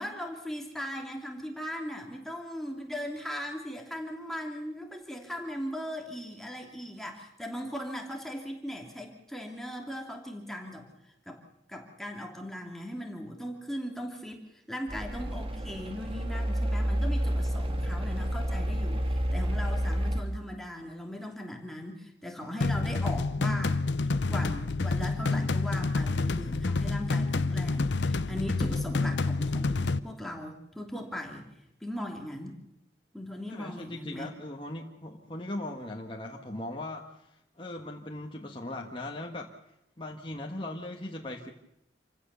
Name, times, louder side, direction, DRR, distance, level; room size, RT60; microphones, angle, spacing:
voice 1, 0.0-10.9 11.3-11.4 11.7-14.4 14.7-31.5 31.8-32.6 33.1-34.3, equal, ahead, 1 dB, 2.9 m, -38 dB
sound 1, 14.9-20.2, equal, 30° right, 1.8 m, -29 dB
sound 2, 22.6-30.0, left 3 dB, 85° left, 0.8 m, -28 dB
voice 2, 33.5-37.3 37.6-39.5 40.0-41.5, left 1 dB, 30° left, 0 dB, 1.6 m, -39 dB
27.5 x 16.0 x 6.9 m, 0.82 s
head